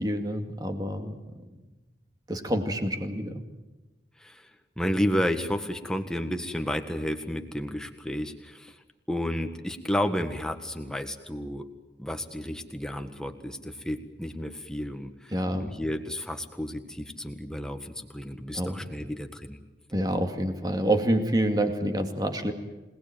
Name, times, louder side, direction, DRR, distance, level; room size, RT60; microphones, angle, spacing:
voice 1, 0.0-1.4 2.3-3.4 15.3-15.7 18.5-18.8 19.9-22.5, right 1 dB, 20° right, 5 dB, 2.4 m, -27 dB
voice 2, 4.2-4.5 4.8-8.8 9.1-11.7 12.0-19.6, equal, 5° left, 6 dB, 1.6 m, -32 dB
27.0 x 19.5 x 9.2 m, 1.1 s
head